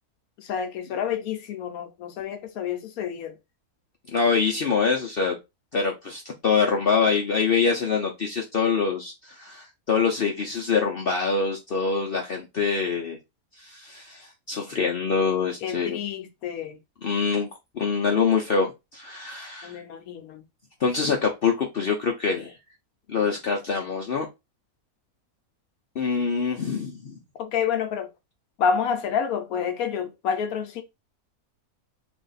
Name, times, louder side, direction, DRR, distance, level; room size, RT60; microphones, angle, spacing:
voice 1, 0.4-3.3 15.6-16.8 19.6-20.4 27.4-28.1 28.6-30.8, left 7 dB, 80° left, 1.0 m, -28 dB
voice 2, 4.1-5.4 5.7-13.2 13.6-16.0 17.0-17.5 17.7-19.8 20.8-22.6 23.1-24.3 26.0-27.2, left 5 dB, 55° left, 0.7 m, -25 dB
3.5 x 2.4 x 3.9 m
omnidirectional pair, 1.6 m